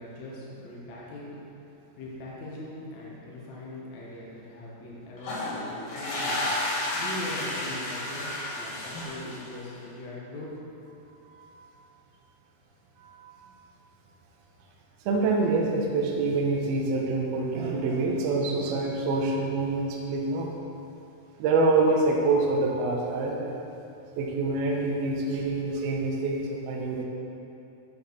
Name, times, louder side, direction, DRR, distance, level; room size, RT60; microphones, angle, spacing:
voice 1, 0.0-1.4 2.0-6.4 6.9-10.5, left 1 dB, 85° left, -6 dB, 1.6 m, -41 dB
sound 1, 5.2-9.7, left 1 dB, 55° left, 2.8 m, -31 dB
voice 2, 13.0-13.4 15.1-20.5 21.4-23.5 24.2-27.0, right 3 dB, 85° right, -1 dB, 2.2 m, -26 dB
9.0 x 6.9 x 4.1 m, 2.8 s
omnidirectional pair, 5.5 m